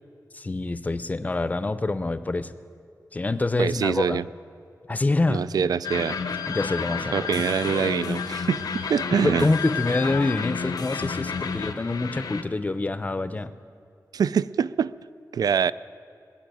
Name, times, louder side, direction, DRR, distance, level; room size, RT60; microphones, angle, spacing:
voice 1, 0.3-2.5 3.1-4.2 4.9-5.4 6.5-7.3 9.2-13.5, left 2 dB, 25° left, 13 dB, 0.5 m, -26 dB
voice 2, 3.6-4.2 5.3-6.2 7.1-8.6 8.9-9.5 14.1-14.9 15.3-15.7, right 7 dB, 75° right, 17 dB, 0.3 m, -24 dB
sound 1, 5.8-12.4, left 5 dB, 80° left, 0.8 m, -31 dB
20.5 x 7.4 x 9.2 m, 2.4 s
wide cardioid pair, 145°, 7 cm